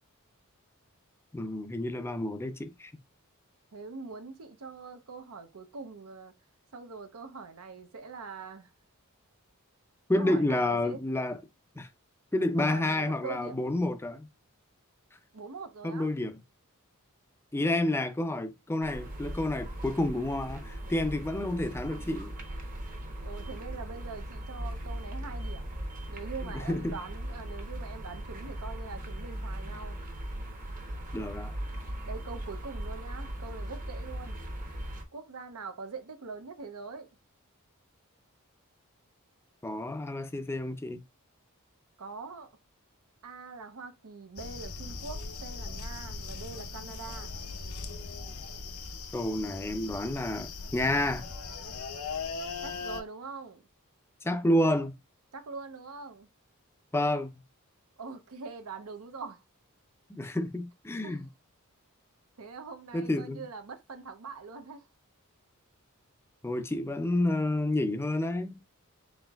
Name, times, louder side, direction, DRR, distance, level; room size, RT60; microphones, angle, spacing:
voice 1, 1.3-2.9 10.1-11.4 11.8-11.9 12.3-14.3 15.8-16.4 17.5-22.3 26.5-27.0 31.1-31.5 39.6-41.0 49.1-51.3 54.2-54.9 56.9-57.3 60.1-61.3 62.9-63.5 66.4-68.6, left 1 dB, 10° left, 0.5 m, -29 dB
voice 2, 3.7-6.3 6.7-8.7 10.1-11.0 12.6-13.7 15.3-16.1 20.9-21.1 23.2-25.7 26.1-30.0 32.0-34.4 35.1-37.2 42.0-42.5 43.2-47.4 52.6-53.6 55.3-56.3 58.0-59.4 61.0-61.2 62.4-64.9, right 4 dB, 75° right, 0.7 m, -43 dB
sound 1, 18.8-35.1, right 1 dB, 40° right, 0.9 m, -39 dB
sound 2, 44.4-53.0, left 4 dB, 75° left, 0.7 m, -39 dB
4.2 x 4.0 x 2.3 m
head